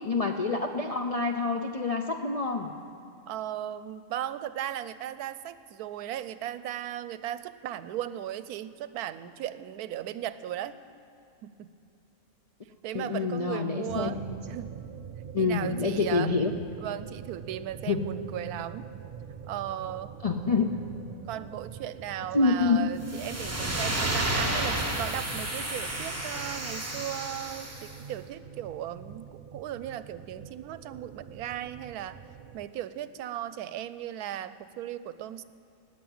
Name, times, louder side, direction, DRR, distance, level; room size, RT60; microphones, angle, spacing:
voice 1, 0.0-2.7 12.9-14.4 15.3-16.5 17.9-18.1 20.2-20.8 22.3-22.8, left 4 dB, 55° left, 2 dB, 0.4 m, -27 dB
voice 2, 3.3-10.8 11.4-11.7 12.8-14.8 15.4-16.3 16.8-18.9 19.4-20.1 21.3-32.2 32.5-35.4, right 11 dB, 90° right, 14 dB, 1.1 m, -37 dB
sound 1, 13.9-32.7, right 7 dB, 65° right, 0.5 m, -45 dB
sound 2, 23.0-28.0, right 1 dB, 10° right, 1.3 m, -31 dB
15.0 x 9.3 x 8.7 m, 2.5 s
omnidirectional pair, 1.6 m